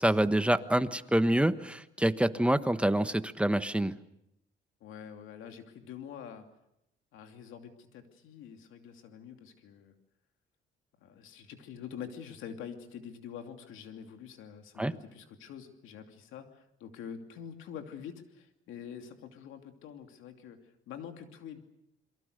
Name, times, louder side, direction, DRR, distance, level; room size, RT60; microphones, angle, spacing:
voice 1, 0.0-3.9 14.8-14.9, right 1 dB, 5° right, 11 dB, 1.2 m, -26 dB
voice 2, 4.8-6.5 7.1-9.9 11.0-21.6, left 8 dB, 90° left, 5 dB, 2.8 m, -46 dB
28.0 x 23.0 x 6.6 m, 0.82 s
cardioid pair, 90°, 20 cm